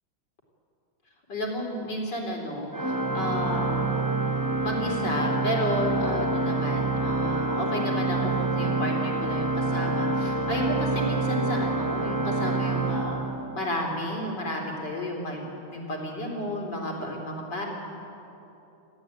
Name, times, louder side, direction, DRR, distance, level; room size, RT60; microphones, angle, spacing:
voice 1, 1.3-3.9 4.6-13.2 13.5-17.7, equal, 55° left, 0 dB, 4.7 m, -32 dB
Organ, 2.7-13.9, right 2 dB, 15° right, 0.8 m, -27 dB
27.5 x 15.5 x 9.2 m, 3.0 s
omnidirectional pair, 2.2 m